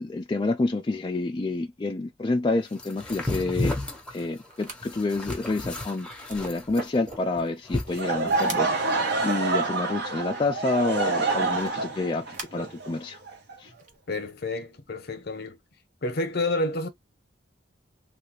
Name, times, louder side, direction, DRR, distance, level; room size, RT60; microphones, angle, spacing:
voice 1, 0.0-3.8 4.1-13.2 13.6-13.7, left 3 dB, 25° left, 0.4 m, -28 dB
sound 1, 2.8-8.6, left 2 dB, 5° left, 0.8 m, -33 dB
sound 2, 3.5-3.7 4.5-4.8 5.4-5.5 5.8-7.4 8.0-8.1 8.4-8.8 9.5-9.8 11.5-12.5 13.7-14.0, right 3 dB, 45° right, 0.9 m, -41 dB
Laughter / Crowd, 7.9-13.8, right 3 dB, 65° right, 0.9 m, -27 dB
voice 2, 14.1-15.6 16.0-16.9, left 2 dB, 60° left, 0.8 m, -29 dB
3.3 x 2.3 x 3.1 m
head